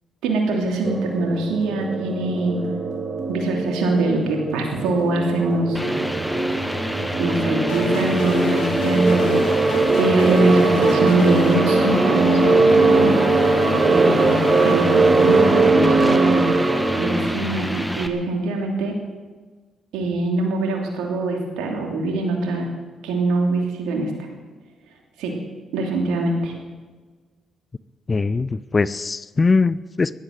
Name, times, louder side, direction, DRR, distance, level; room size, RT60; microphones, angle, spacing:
voice 1, 0.2-2.7 3.3-5.8 7.2-9.3 9.9-13.1 13.9-18.9 19.9-22.6 23.0-24.3 25.2-25.3 25.7-26.5, right 2 dB, 85° right, 1 dB, 2.9 m, -23 dB
sound 1, 0.8-17.4, right 3 dB, 40° right, 1.9 m, -21 dB
sound 2, 5.7-18.1, equal, 5° left, 1.8 m, -27 dB
sound 3, 7.7-15.7, left 3 dB, 90° left, 2.5 m, -28 dB
voice 2, 28.1-30.1, left 4 dB, 35° left, 18 dB, 0.6 m, -21 dB
15.5 x 11.5 x 7.6 m, 1.4 s
supercardioid pair, 55°, 0 cm